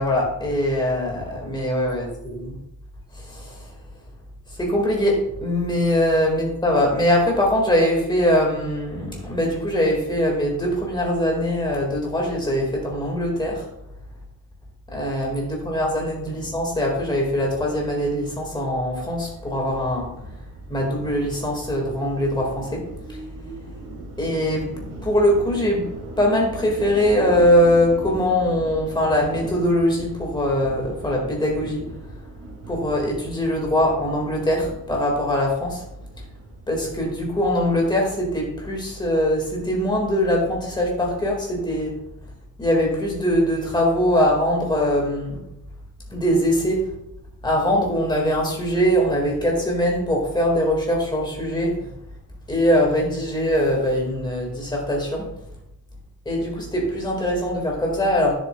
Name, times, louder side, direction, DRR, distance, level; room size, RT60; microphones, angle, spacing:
voice 1, 0.0-2.5 3.1-3.7 4.6-13.6 14.9-20.1 20.7-22.8 23.1-23.2 24.2-24.7 25.0-25.9 26.2-32.1 32.7-35.8 36.7-42.0 42.6-45.4 46.1-46.9 47.4-51.9 52.5-55.3 56.3-58.4, equal, 10° left, -1 dB, 2.0 m, -22 dB
sound 1, 18.9-38.2, right 2 dB, 45° right, 2.2 m, -40 dB
10.0 x 7.3 x 2.3 m, 0.85 s
cardioid pair, 160°, 35 cm